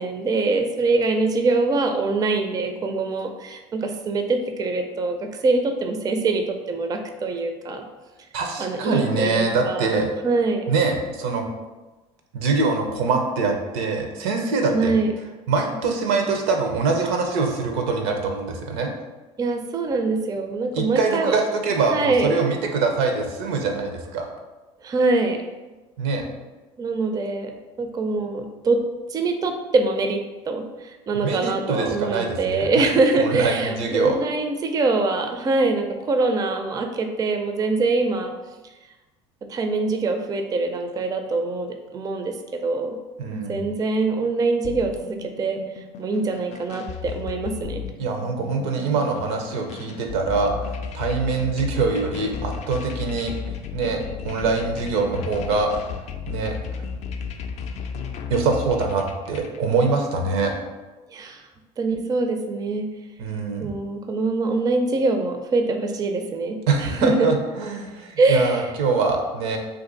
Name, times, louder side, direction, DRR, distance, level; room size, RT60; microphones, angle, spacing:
voice 1, 0.0-7.9 8.6-10.7 14.7-15.1 19.4-21.4 21.9-22.4 24.8-25.4 26.8-27.5 27.8-28.8 29.1-38.3 39.5-43.0 43.3-47.8 61.1-61.5 61.8-62.9 63.6-67.3 68.2-68.7, right 3 dB, 25° right, 5 dB, 0.4 m, -24 dB
voice 2, 8.3-10.1 10.7-11.5 12.3-15.0 15.5-18.9 20.7-24.3 26.0-26.3 31.1-34.2 43.2-43.7 48.0-50.5 50.9-53.4 53.7-55.7 56.3-56.5 58.3-60.5 63.2-63.8 66.7-69.6, right 4 dB, 80° right, 3 dB, 0.6 m, -24 dB
sound 1, 44.6-59.6, left 6 dB, 50° left, 0.4 m, -34 dB
2.6 x 2.5 x 3.8 m, 1.2 s
supercardioid pair, 85°, 14 cm